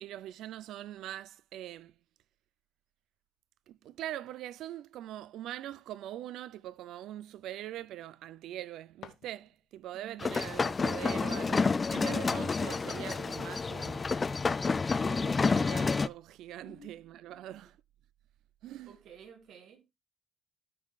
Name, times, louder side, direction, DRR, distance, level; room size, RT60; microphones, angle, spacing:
voice 1, 0.0-1.9 3.7-14.1 15.0-17.8 18.6-19.0, right 12 dB, 85° right, 0.4 m, -43 dB
sound 1, 8.9-10.0, left 10 dB, 75° left, 1.2 m, -54 dB
voice 2, 9.9-10.3 16.6-17.0 17.3-17.4 18.9-19.8, right 6 dB, 70° right, 1.8 m, -52 dB
sound 2, 10.2-16.1, left 4 dB, 25° left, 0.3 m, -29 dB
13.5 x 5.4 x 2.3 m
cardioid pair, 140°, 0 cm